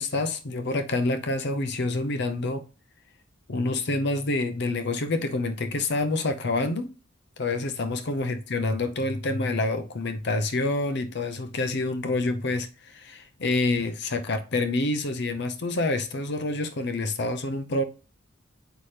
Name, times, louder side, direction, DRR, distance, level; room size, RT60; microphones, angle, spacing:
voice 1, 0.0-2.6 3.5-6.9 7.4-17.8, left 2 dB, 55° left, 0.7 m, -27 dB
8.2 x 5.6 x 3.3 m
head